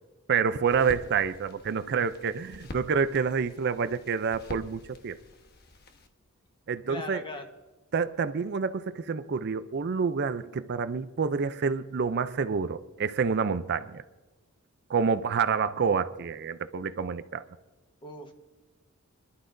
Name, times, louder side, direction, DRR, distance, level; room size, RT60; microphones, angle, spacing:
voice 1, 0.3-5.2 6.7-7.2 7.9-14.0 14.9-17.4, right 5 dB, 50° right, 0.4 m, -28 dB
sound 1, 0.7-6.1, left 1 dB, 50° left, 1.1 m, -46 dB
voice 2, 6.9-7.4 18.0-18.3, left 1 dB, 25° left, 1.2 m, -39 dB
27.0 x 11.5 x 2.6 m
head